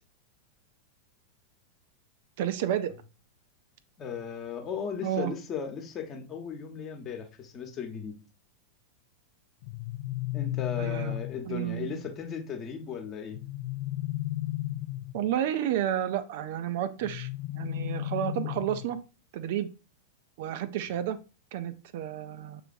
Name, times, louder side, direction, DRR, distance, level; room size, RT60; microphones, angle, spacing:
voice 1, 2.4-2.9 5.0-5.3 10.8-11.2 11.5-12.0 15.1-17.3 17.6-19.0 19.3-19.7 20.4-21.2 21.5-22.6, right 11 dB, 50° right, 0.4 m, -31 dB
voice 2, 4.0-8.2 10.3-13.4, left 6 dB, 30° left, 1.0 m, -36 dB
sound 1, 9.6-11.6 13.3-15.3 17.0-19.0, left 16 dB, 50° left, 0.3 m, -34 dB
6.6 x 3.2 x 2.5 m
figure-of-eight pair, 90°, 0 cm